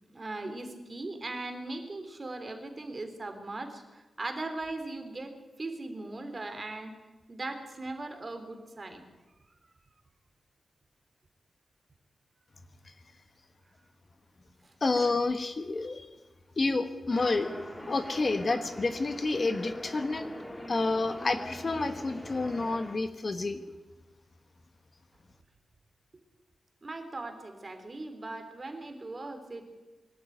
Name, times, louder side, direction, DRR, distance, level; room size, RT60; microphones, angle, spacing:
voice 1, 0.1-5.3 5.6-6.9 7.3-9.0 14.6-14.7 26.8-29.6, right 2 dB, 30° right, 6 dB, 3.3 m, -39 dB
voice 2, 14.8-16.1 16.6-17.5 17.9-20.3 20.7-23.6, left 3 dB, 35° left, 8 dB, 1.3 m, -29 dB
sound 1, 17.1-23.0, equal, 10° left, 2.4 m, -42 dB
23.5 x 12.5 x 9.2 m, 1.2 s
wide cardioid pair, 120°, 0 cm